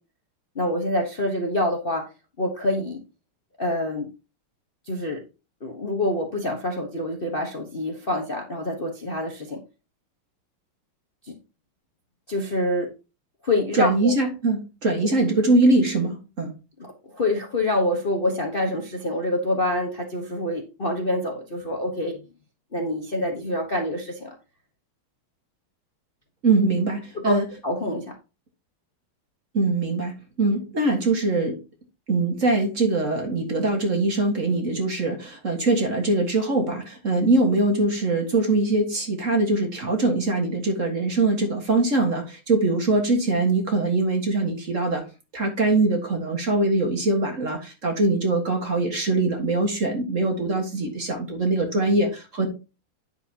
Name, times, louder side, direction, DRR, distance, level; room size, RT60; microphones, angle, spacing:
voice 1, 0.5-2.0 2.4-3.0 3.6-4.1 4.9-5.2 5.6-9.6 11.2-11.3 12.3-12.9 13.4-14.1 16.8-22.2 22.7-24.3 27.2-27.4 27.6-28.0, left 1 dB, 30° left, 2 dB, 1.1 m, -26 dB
voice 2, 13.7-16.5 26.4-27.5 29.5-31.6 32.1-45.0 45.3-52.5, right 2 dB, 40° right, 3 dB, 1.9 m, -22 dB
10.0 x 6.8 x 2.9 m, 0.30 s
omnidirectional pair, 2.4 m